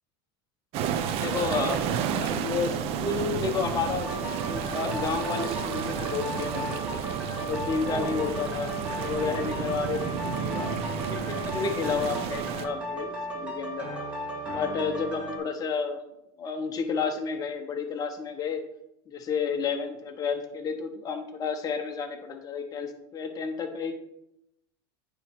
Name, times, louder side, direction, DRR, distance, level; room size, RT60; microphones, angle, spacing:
sound 1, 0.7-12.7, right 8 dB, 50° right, 0.6 m, -31 dB
voice 1, 1.2-7.0 7.4-10.7 11.1-14.0 14.5-16.1 16.4-18.6 19.1-23.9, left 5 dB, 30° left, 4 dB, 0.8 m, -31 dB
sound 2, 4.0-15.4, right 1 dB, 10° right, 2.0 m, -35 dB
9.0 x 3.1 x 4.4 m, 0.84 s
supercardioid pair, 115°, 13 cm